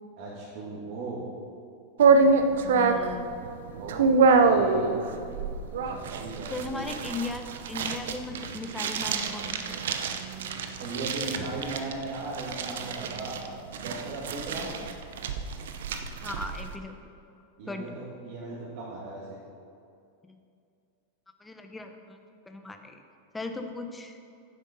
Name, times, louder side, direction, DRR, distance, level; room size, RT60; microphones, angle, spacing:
voice 1, 0.2-1.3 3.8-4.0 4.4-5.0 5.8-6.9 10.8-13.4 13.8-14.7 17.6-19.4, right 2 dB, 55° right, -7 dB, 2.4 m, -37 dB
sound 1, 2.0-16.7, right 4 dB, 85° right, 0.7 m, -26 dB
voice 2, 2.6-3.3 6.5-9.8 16.2-16.9 17.7-17.9 21.4-23.0 23.3-24.2, left 2 dB, 10° left, 5 dB, 0.7 m, -37 dB
10.5 x 7.6 x 5.4 m, 2.4 s
supercardioid pair, 145°, 0 cm